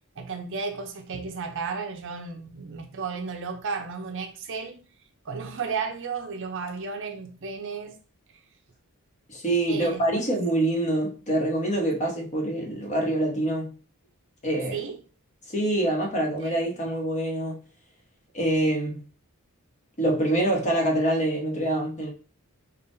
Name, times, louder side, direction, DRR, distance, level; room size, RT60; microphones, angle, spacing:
voice 1, 0.2-4.8 5.2-7.9 9.7-10.2 14.7-15.0 16.4-16.6, right 5 dB, 60° right, 0.6 m, -33 dB
voice 2, 9.3-13.7 14.4-14.8 15.5-17.6 18.3-19.0 20.0-22.1, right 1 dB, 30° left, 1.1 m, -25 dB
5.3 x 2.4 x 2.6 m
head